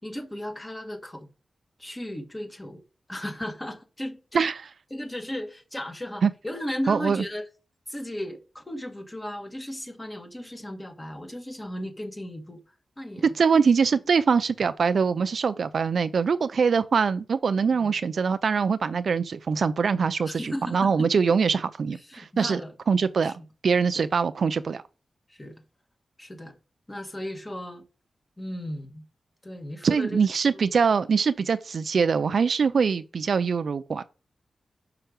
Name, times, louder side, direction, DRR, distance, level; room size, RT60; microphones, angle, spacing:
voice 1, 0.0-1.3 1.8-2.8 3.1-4.4 4.9-7.4 7.9-12.6 13.0-13.3 17.7-17.9 20.3-21.1 22.0-22.7 23.2-23.3 25.3-25.5 26.2-26.5 26.9-27.8 28.4-29.0 29.4-30.2 30.5-30.6, left 1 dB, 20° left, 1.5 m, -35 dB
voice 2, 6.9-7.2 13.2-22.6 22.9-23.3 23.6-24.8 29.8-34.0, right 5 dB, 70° right, 0.4 m, -23 dB
5.8 x 5.5 x 5.1 m
wide cardioid pair, 115°, 0 cm